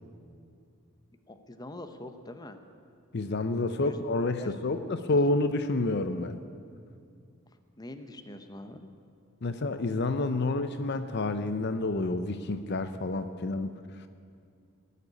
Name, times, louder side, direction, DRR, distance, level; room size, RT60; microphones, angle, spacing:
voice 1, 1.3-2.6 3.7-4.0 4.4-5.0 7.8-8.9, left 1 dB, 20° left, 7 dB, 0.8 m, -44 dB
voice 2, 3.1-6.4 9.4-13.7, left 2 dB, 55° left, 9 dB, 0.6 m, -29 dB
19.5 x 6.7 x 9.8 m, 2.3 s
head